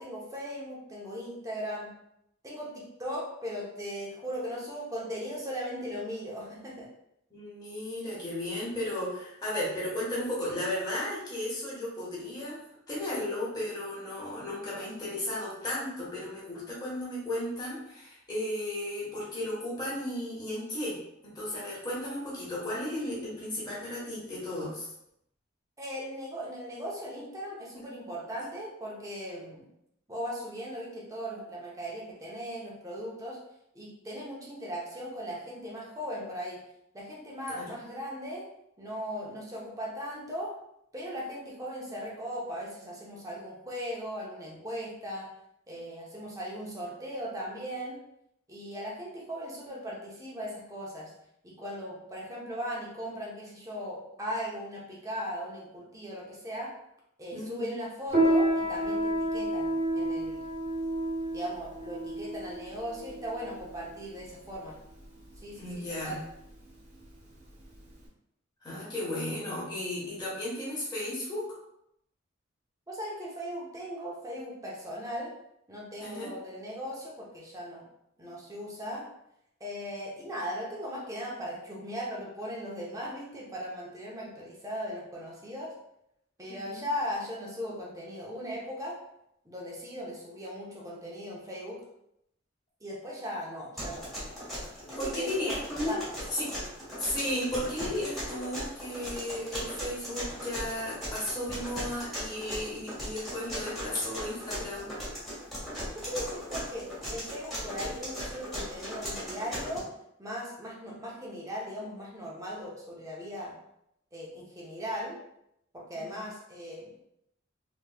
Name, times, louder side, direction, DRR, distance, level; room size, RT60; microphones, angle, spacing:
voice 1, 0.0-1.9 2.4-6.9 25.8-29.7 30.1-33.4 33.7-36.6 36.9-38.4 38.8-40.5 40.9-45.3 45.7-48.0 48.5-51.1 51.4-56.7 57.2-60.4 61.3-64.8 65.4-66.2 72.9-75.3 75.7-77.8 78.2-79.1 79.6-85.7 86.4-89.0 89.4-91.8 92.8-94.2 94.9-95.6 95.8-96.0 105.9-109.9 110.2-113.5 114.1-115.2 115.7-116.9, equal, 15° right, -4 dB, 0.8 m, -38 dB
voice 2, 7.3-12.6 12.9-24.9 27.8-27.9 37.6-37.7 57.3-57.8 65.6-66.2 68.6-71.5 76.0-76.3 86.5-86.8 95.0-96.0 96.3-96.5 97.0-104.9 116.0-116.2, left 1 dB, 20° left, -7 dB, 1.2 m, -34 dB
Piano, 58.1-68.0, right 1 dB, 35° right, 1.1 m, -30 dB
sound 1, 93.8-109.8, equal, ahead, 1.3 m, -38 dB
3.4 x 3.1 x 2.3 m, 0.78 s
head